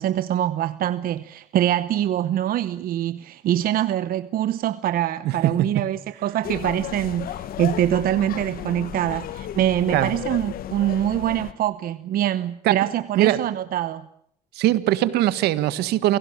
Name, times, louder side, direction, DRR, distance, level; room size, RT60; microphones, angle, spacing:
voice 1, 0.0-14.1, right 11 dB, 60° right, 0.9 m, -24 dB
voice 2, 5.2-5.8 9.9-10.1 13.2-13.4 14.5-16.2, right 14 dB, 80° right, 1.6 m, -21 dB
sound 1, 6.4-11.5, left 11 dB, 65° left, 1.3 m, -34 dB
28.5 x 17.5 x 8.8 m
cardioid pair, 110°, 17 cm